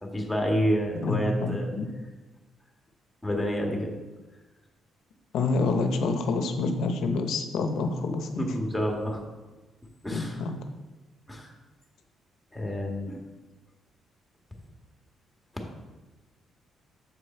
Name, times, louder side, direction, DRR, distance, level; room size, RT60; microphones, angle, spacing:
voice 1, 0.0-1.7 3.2-3.9 8.4-9.2 10.0-10.4 11.3-11.5 12.5-13.2, equal, 5° left, 1 dB, 1.6 m, -28 dB
voice 2, 0.9-1.9 5.3-8.4 10.1-10.6, left 3 dB, 80° left, 7 dB, 0.8 m, -27 dB
7.5 x 5.0 x 4.4 m, 1.2 s
cardioid pair, 90°, 0 cm